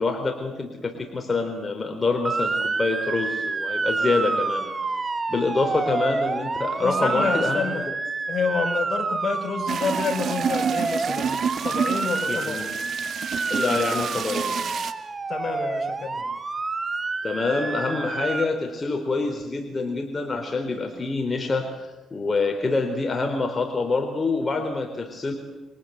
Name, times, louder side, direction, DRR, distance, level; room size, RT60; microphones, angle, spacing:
voice 1, 0.0-4.7 5.3-7.8 12.3-12.8 13.5-14.6 17.2-25.3, left 3 dB, 30° left, 4 dB, 4.1 m, -26 dB
Motor vehicle (road) / Siren, 2.2-18.5, right 3 dB, 30° right, 1.8 m, -28 dB
voice 2, 6.8-7.9 8.3-11.4 11.6-12.6 15.3-16.3, left 5 dB, 45° left, 5 dB, 5.2 m, -28 dB
sound 1, 9.7-14.9, right 7 dB, 60° right, 2.0 m, -29 dB
30.0 x 23.5 x 8.2 m, 1.1 s
cardioid pair, 90°, 0 cm